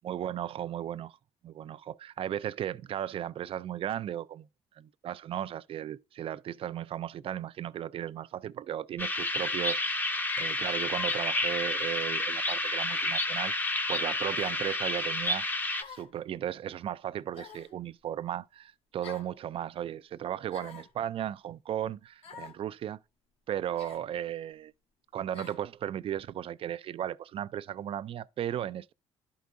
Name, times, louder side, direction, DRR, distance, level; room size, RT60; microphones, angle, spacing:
voice 1, 0.0-1.2 1.4-4.5 4.8-13.5 13.9-15.4 15.9-23.0 23.5-24.7 25.1-28.9, right 10 dB, 50° right, 0.4 m, -36 dB
sound 1, 9.0-15.8, left 2 dB, 15° left, 0.8 m, -30 dB
sound 2, 12.9-13.2 14.4-14.6 15.8-16.2 17.3-17.8 19.0-19.3 20.5-20.9 22.2-22.6 23.8-24.1 25.3-25.6, left 6 dB, 55° left, 1.4 m, -48 dB
11.5 x 4.6 x 2.5 m
cardioid pair, 100°, 12 cm